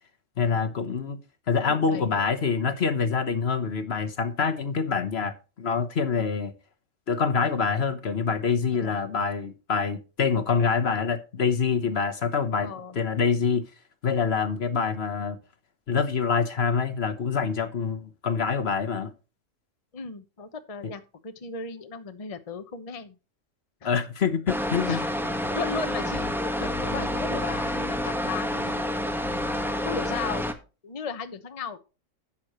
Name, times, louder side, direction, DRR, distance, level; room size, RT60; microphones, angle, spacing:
voice 1, 0.4-1.2 1.5-6.5 7.1-13.6 14.0-15.4 15.9-19.1 20.8-20.9 23.8-25.0, left 5 dB, 55° left, 1.3 m, -26 dB
voice 2, 1.6-2.3 8.8-9.0 12.6-13.0 19.9-23.1 23.8-23.9 24.9-28.9 29.8-30.5 30.8-31.8, left 5 dB, 30° left, 0.9 m, -36 dB
sound 1, 24.5-30.5, left 1 dB, ahead, 1.2 m, -28 dB
11.5 x 8.6 x 3.0 m
omnidirectional pair, 1.3 m